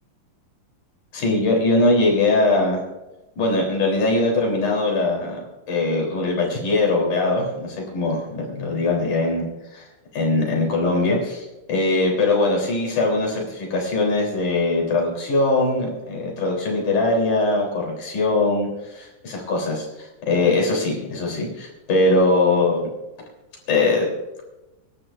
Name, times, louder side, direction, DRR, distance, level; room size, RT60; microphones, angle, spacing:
voice 1, 1.1-2.8 3.4-9.5 9.7-9.9 10.1-22.9 23.7-24.1, left 2 dB, 75° left, -1 dB, 5.0 m, -21 dB
26.0 x 12.5 x 2.6 m, 1.0 s
omnidirectional pair, 3.5 m